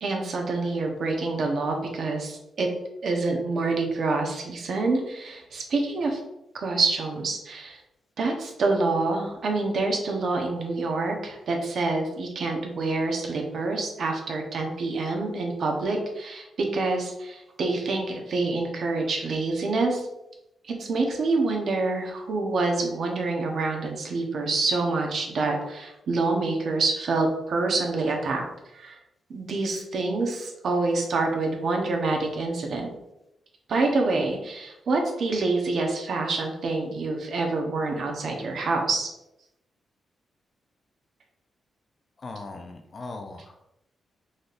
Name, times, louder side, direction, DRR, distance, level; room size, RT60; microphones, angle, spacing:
voice 1, 0.0-2.7 3.0-6.2 6.5-7.8 8.2-20.0 20.8-28.4 28.7-29.0 29.3-32.9 33.7-39.1, right 3 dB, 65° right, 2 dB, 0.8 m, -27 dB
voice 2, 42.2-43.6, left 3 dB, 40° left, 6 dB, 0.4 m, -39 dB
4.1 x 3.3 x 2.5 m, 0.87 s
cardioid pair, 115°, 0 cm